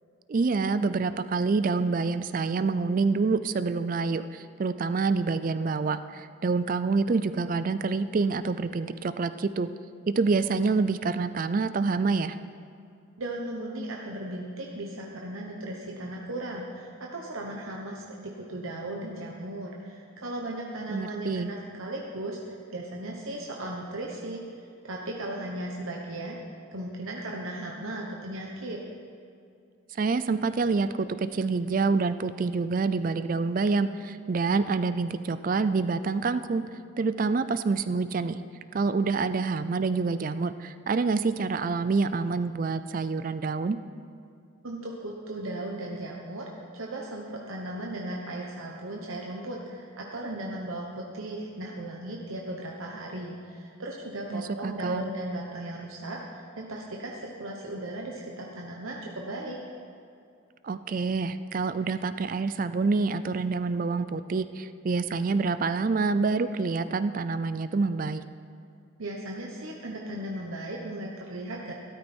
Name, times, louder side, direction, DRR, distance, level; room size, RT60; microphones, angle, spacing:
voice 1, 0.3-9.7 10.2-12.4 20.9-21.5 30.0-36.6 37.0-38.4 38.7-43.8 54.3-55.1 60.6-68.2, right 4 dB, 40° right, 13 dB, 0.3 m, -27 dB
voice 2, 13.2-26.4 26.7-28.8 44.6-59.6 69.0-71.7, right 1 dB, 80° right, -1 dB, 1.1 m, -36 dB
13.0 x 13.0 x 4.4 m, 2.5 s
head